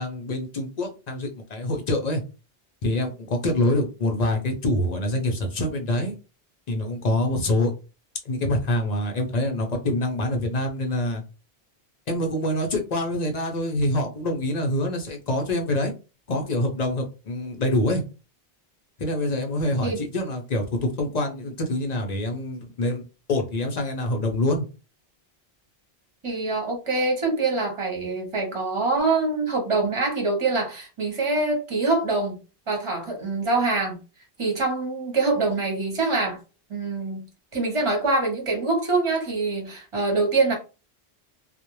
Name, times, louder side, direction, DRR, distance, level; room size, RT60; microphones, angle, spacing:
voice 1, 0.0-2.2 2.8-6.1 6.7-7.7 8.2-11.2 12.1-15.9 16.3-18.0 19.0-24.7, left 1 dB, 50° left, 0.6 m, -25 dB
voice 2, 26.2-32.4 32.7-34.0 34.4-36.4 36.7-37.2 37.5-40.6, right 3 dB, 30° right, 0.9 m, -24 dB
2.4 x 2.1 x 2.9 m
omnidirectional pair, 1.0 m